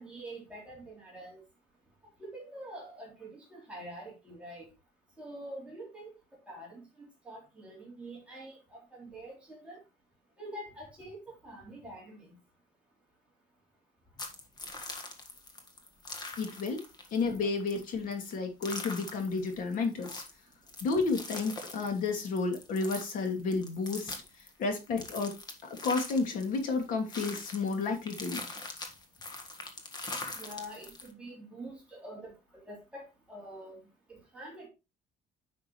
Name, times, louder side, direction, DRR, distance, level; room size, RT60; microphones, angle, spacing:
voice 1, 0.0-1.4 2.2-4.7 5.2-6.1 6.5-9.8 10.4-12.3 30.4-33.8 34.1-34.7, right 1 dB, 5° right, -5 dB, 3.5 m, -46 dB
sound 1, 14.2-31.1, left 3 dB, 25° left, 1.5 m, -43 dB
voice 2, 16.4-16.8 17.1-20.2 20.8-24.1 24.6-25.3 25.8-28.4, left 4 dB, 55° left, 4 dB, 2.6 m, -31 dB
10.0 x 5.9 x 3.2 m, 0.27 s
cardioid pair, 160°, 17 cm